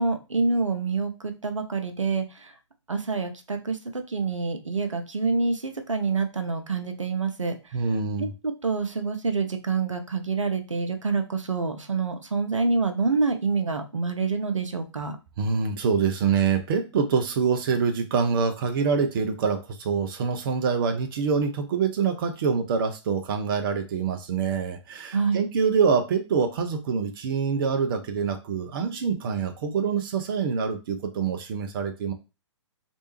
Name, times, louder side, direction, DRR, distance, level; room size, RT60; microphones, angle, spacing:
voice 1, 0.0-2.5 2.9-7.6 8.2-15.2 25.1-25.5, right 4 dB, 90° right, 6 dB, 0.6 m, -27 dB
voice 2, 7.7-8.3 15.4-32.1, right 6 dB, 45° right, 6 dB, 0.6 m, -25 dB
3.2 x 2.6 x 3.0 m, 0.29 s
figure-of-eight pair, 125°, 16 cm